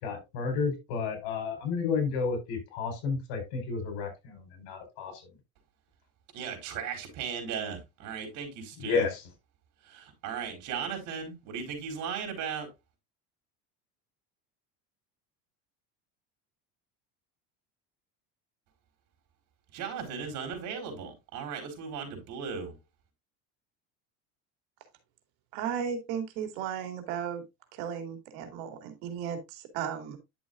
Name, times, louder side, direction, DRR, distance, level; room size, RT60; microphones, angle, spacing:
voice 1, 0.0-5.1 8.8-9.2, left 5 dB, 80° left, 4.7 m, -31 dB
voice 2, 6.3-9.1 9.9-12.7 19.7-22.7, right 6 dB, 60° right, 4.5 m, -37 dB
voice 3, 25.5-27.4 27.7-30.2, right 8 dB, 85° right, 2.6 m, -35 dB
10.5 x 7.1 x 2.5 m
cardioid pair, 130°, 34 cm